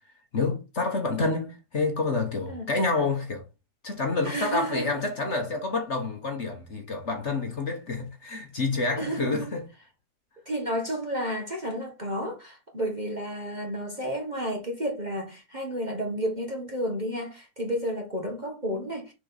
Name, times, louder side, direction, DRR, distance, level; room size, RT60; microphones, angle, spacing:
voice 1, 0.3-3.4 3.8-9.7, left 3 dB, 40° left, 1.4 m, -28 dB
voice 2, 4.2-5.1 9.0-9.5 10.4-19.1, equal, 25° right, 1.3 m, -31 dB
6.6 x 4.6 x 4.0 m
omnidirectional pair, 2.0 m